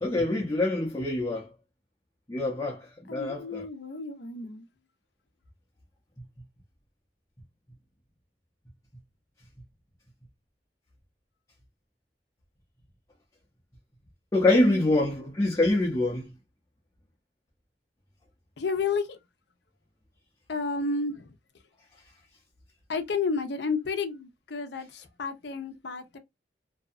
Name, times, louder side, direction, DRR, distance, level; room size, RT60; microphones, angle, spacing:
voice 1, 0.0-1.5 2.3-3.7 14.3-16.3, left 2 dB, 20° left, 0.6 m, -25 dB
voice 2, 3.1-4.7 14.7-15.1 18.6-19.2 20.5-21.3 22.9-26.2, left 4 dB, 65° left, 0.6 m, -31 dB
2.7 x 2.2 x 2.4 m
head